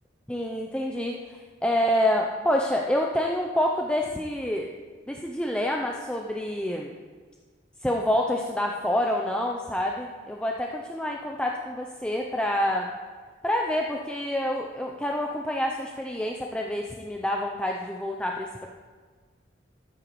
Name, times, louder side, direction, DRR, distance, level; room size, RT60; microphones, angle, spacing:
voice 1, 0.3-4.7 5.1-6.9 7.8-12.9 13.4-18.7, left 1 dB, 5° left, 0 dB, 0.4 m, -27 dB
13.5 x 7.9 x 3.1 m, 1.5 s
head